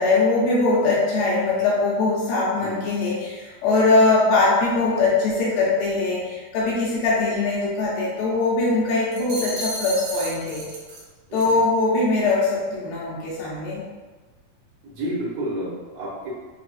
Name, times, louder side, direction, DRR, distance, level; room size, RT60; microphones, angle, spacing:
voice 1, 0.0-10.7 11.3-13.8, left 3 dB, 75° left, -6 dB, 2.4 m, -21 dB
sound 1, 9.1-11.0 11.4-11.6, right 1 dB, 85° right, 2.7 m, -33 dB
voice 2, 14.8-16.3, right 1 dB, 65° right, -8 dB, 1.6 m, -31 dB
6.1 x 2.4 x 2.4 m, 1.3 s
omnidirectional pair, 4.3 m